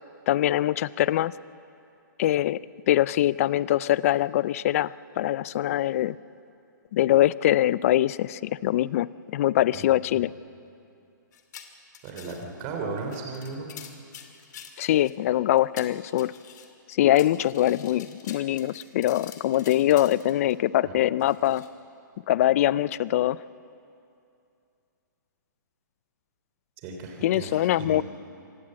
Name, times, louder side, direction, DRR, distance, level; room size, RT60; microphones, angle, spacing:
voice 1, 0.3-1.3 2.2-6.2 6.9-9.1 9.3-10.3 14.8-16.3 16.9-21.6 22.3-23.4 27.2-28.0, left 13 dB, 45° left, 20 dB, 0.5 m, -23 dB
sound 1, 11.3-12.6 13.0-15.1 15.6-16.7 17.2-20.5 21.2-21.7, left 8 dB, 60° left, 2.5 m, -47 dB
voice 2, 12.0-13.7 20.8-21.0 26.8-28.0, right 4 dB, 35° right, 2 dB, 3.3 m, -35 dB
25.0 x 18.5 x 7.7 m, 2.6 s
hypercardioid pair, 145°, 11 cm